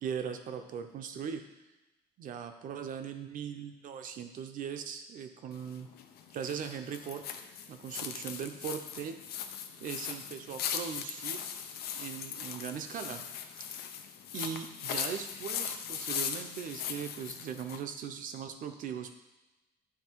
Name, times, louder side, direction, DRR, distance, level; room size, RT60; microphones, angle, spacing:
voice 1, 0.0-1.5 2.2-5.9 6.3-7.2 7.7-9.2 9.8-11.5 11.9-13.2 14.3-19.1, right 7 dB, 55° right, 7 dB, 0.6 m, -39 dB
sound 1, 5.5-17.8, left 8 dB, 70° left, 0.6 m, -39 dB
9.5 x 3.2 x 4.6 m, 1.0 s
cardioid pair, 150°, 17 cm